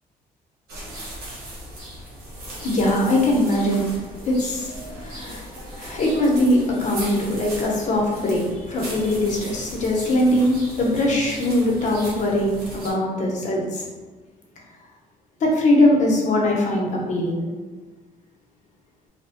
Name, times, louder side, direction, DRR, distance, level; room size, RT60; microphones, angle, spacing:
sound 1, 0.7-12.9, right 1 dB, 80° right, 1.0 m, -38 dB
voice 1, 2.6-3.9 4.2-5.5 5.7-13.8 15.4-17.4, left 1 dB, 50° left, -1 dB, 0.7 m, -21 dB
2.6 x 2.1 x 2.8 m, 1.3 s
cardioid pair, 100°, 16 cm